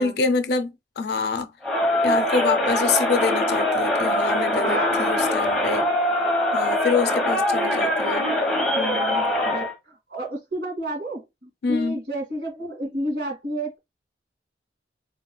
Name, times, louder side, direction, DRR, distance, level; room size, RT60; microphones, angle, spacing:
voice 1, 0.0-1.5 2.0-5.9 6.5-8.3 8.7-9.3 11.6-12.0, left 4 dB, 70° left, 0.5 m, -26 dB
Crowd, 1.6-9.7, left 1 dB, ahead, 1.0 m, -23 dB
voice 2, 4.5-5.6 7.4-7.5 9.4-13.8, right 1 dB, 80° right, 2.3 m, -31 dB
3.9 x 3.1 x 2.3 m
head